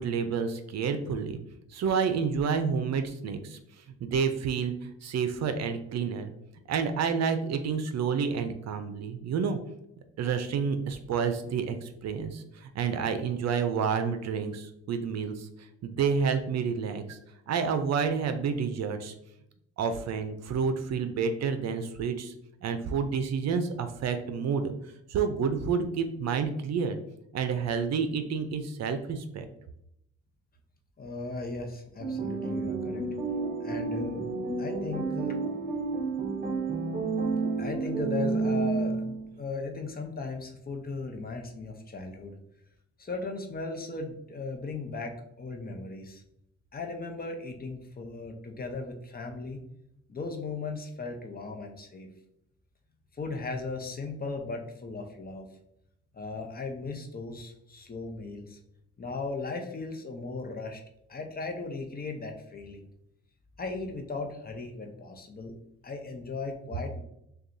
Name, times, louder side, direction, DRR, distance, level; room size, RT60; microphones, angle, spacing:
voice 1, 0.0-1.4 1.7-6.3 6.7-9.6 10.2-15.5 15.8-17.2 17.5-19.1 19.8-22.3 22.6-24.7 25.1-27.0 27.3-29.5, right 6 dB, 60° right, 9 dB, 0.6 m, -29 dB
voice 2, 31.0-33.1 33.6-34.2 34.6-35.4 37.6-42.4 43.0-46.2 46.7-49.6 50.1-52.1 53.2-55.5 56.1-58.6 59.0-60.8 61.1-62.9 63.6-65.5 65.8-67.0, left 3 dB, 30° left, 3 dB, 0.7 m, -37 dB
sound 1, 32.0-39.3, right 4 dB, 30° right, 0.8 m, -30 dB
6.4 x 2.4 x 2.6 m, 0.80 s
cardioid pair, 90°, 30 cm